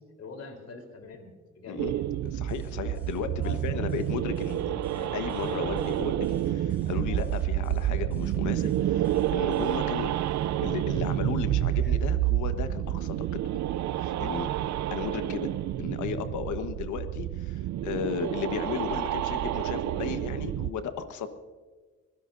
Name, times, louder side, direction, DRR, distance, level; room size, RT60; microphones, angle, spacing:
voice 1, 0.2-2.1 3.4-3.9, left 3 dB, 55° left, 3 dB, 3.8 m, -44 dB
sound 1, 1.8-20.7, right 13 dB, 70° right, 0.5 m, -29 dB
sound 2, 2.2-9.8, right 1 dB, 5° right, 3.1 m, -46 dB
voice 2, 2.3-10.3 10.6-13.1 14.0-15.5 15.8-21.3, left 6 dB, 80° left, 9 dB, 1.3 m, -35 dB
Fart, 4.7-12.5, left 2 dB, 35° left, 4.9 m, -55 dB
24.0 x 17.0 x 2.6 m, 1.4 s
cardioid pair, 75°, 29 cm